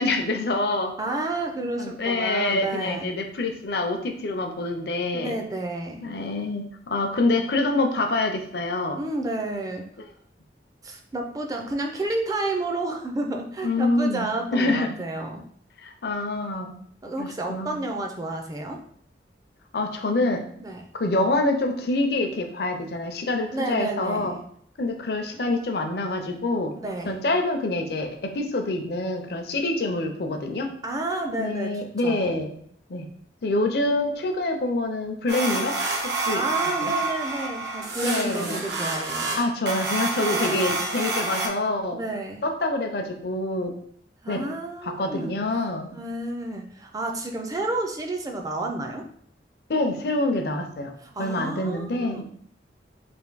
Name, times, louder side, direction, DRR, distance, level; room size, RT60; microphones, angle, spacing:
voice 1, 0.0-0.9 1.8-5.4 6.0-9.0 13.6-14.9 15.8-16.7 17.2-17.8 19.7-20.4 20.9-24.3 24.8-26.7 27.1-30.7 31.4-32.5 32.9-33.1 33.4-35.7 36.0-36.4 36.8-36.9 38.0-38.6 39.4-42.0 42.4-43.7 44.3-44.5 44.8-45.9 49.7-50.9 51.2-52.2, left 2 dB, 60° left, 4 dB, 0.5 m, -26 dB
voice 2, 1.0-3.1 5.1-6.0 9.0-9.8 10.8-15.5 17.0-18.8 20.6-20.8 23.5-24.4 26.8-27.2 30.8-32.4 36.3-39.3 40.2-40.8 41.9-42.4 44.2-45.7 45.9-49.1 51.0-52.2, right 2 dB, 20° right, 3 dB, 0.4 m, -31 dB
sound 1, 35.3-41.5, right 3 dB, 85° right, 0.9 m, -28 dB
3.4 x 2.6 x 3.9 m, 0.63 s
head